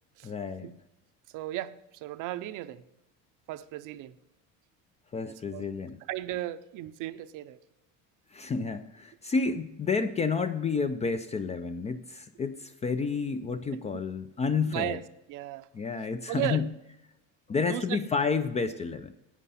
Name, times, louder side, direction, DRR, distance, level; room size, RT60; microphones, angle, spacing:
voice 1, 0.2-0.7 5.1-6.0 8.3-15.0 15.7-16.7 17.5-19.1, left 5 dB, 20° left, 0.4 m, -30 dB
voice 2, 1.3-2.8 3.5-4.2 5.2-5.7 6.1-7.6 13.7-14.0 14.7-15.7 16.3-16.7 17.7-18.1, right 14 dB, 55° right, 0.6 m, -36 dB
11.0 x 8.4 x 4.2 m
cardioid pair, 130°, 38 cm